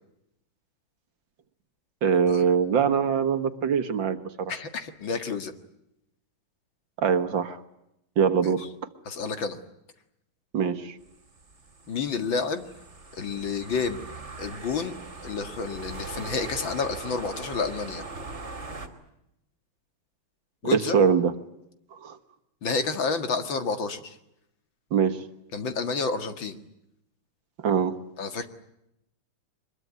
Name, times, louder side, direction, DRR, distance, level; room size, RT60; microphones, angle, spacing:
voice 1, 2.0-4.5 7.0-7.6 8.2-8.7 10.5-11.0 20.7-21.3 21.9-22.2 24.9-25.2 27.6-28.0, right 6 dB, 60° right, 11 dB, 2.0 m, -23 dB
voice 2, 4.5-5.5 8.4-8.5 9.1-9.6 11.9-12.6 13.1-14.0 14.4-14.9 15.2-18.0 20.6-21.0 22.6-24.2 25.5-26.6 28.2-28.5, left 4 dB, 60° left, 8 dB, 2.6 m, -30 dB
sound 1, 11.1-18.9, right 3 dB, 30° right, 2.8 m, -40 dB
24.5 x 22.0 x 9.4 m, 0.82 s
omnidirectional pair, 2.4 m